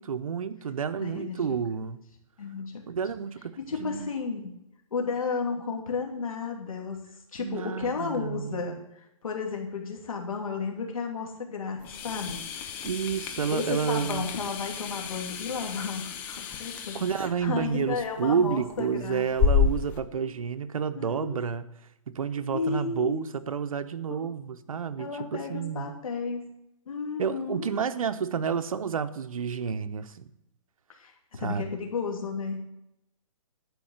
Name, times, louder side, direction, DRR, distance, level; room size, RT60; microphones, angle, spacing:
voice 1, 0.0-2.0 2.9-4.1 7.4-8.9 12.8-14.3 16.9-21.7 22.1-25.9 27.2-30.3 31.4-31.6, right 7 dB, 80° right, 0.9 m, -30 dB
voice 2, 1.0-1.6 2.4-2.8 3.6-4.5 4.9-12.4 13.5-19.3 20.2-20.3 20.9-21.4 22.5-23.2 24.1-24.2 25.0-26.4 26.9-27.7 31.0-31.1 31.4-32.7, left 5 dB, 85° left, 2.7 m, -33 dB
sound 1, 11.8-20.0, left 6 dB, 10° left, 0.4 m, -31 dB
11.5 x 4.8 x 8.0 m
hypercardioid pair, 160°, 17 cm